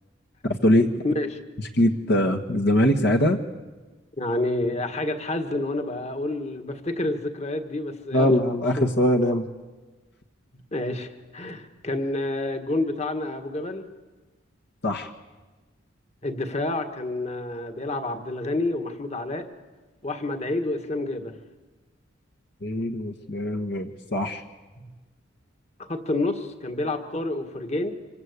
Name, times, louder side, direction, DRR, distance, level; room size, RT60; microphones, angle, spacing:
voice 1, 0.4-0.9 1.7-3.4 8.1-9.5 14.8-15.1 22.6-24.4, left 1 dB, 60° left, 4 dB, 1.4 m, -22 dB
voice 2, 1.0-1.4 4.2-8.4 8.8-8.9 10.7-13.9 16.2-19.5 20.0-21.3 25.9-27.9, left 2 dB, 35° left, 7 dB, 1.8 m, -28 dB
26.5 x 24.5 x 8.3 m, 1.2 s
head